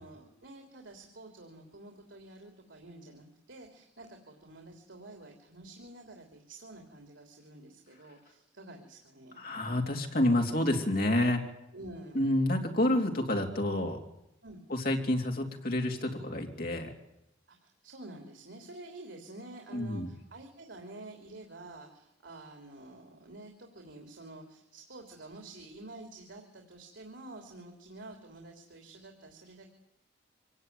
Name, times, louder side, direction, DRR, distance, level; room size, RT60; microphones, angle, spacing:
voice 1, 0.0-9.4 11.7-12.3 14.4-14.6 17.5-29.7, right 2 dB, 85° right, 3 dB, 3.3 m, -49 dB
voice 2, 9.4-11.4 12.2-14.0 14.7-16.9 19.7-20.1, left 1 dB, 50° left, 2 dB, 3.3 m, -29 dB
25.0 x 17.0 x 9.5 m, 0.84 s
head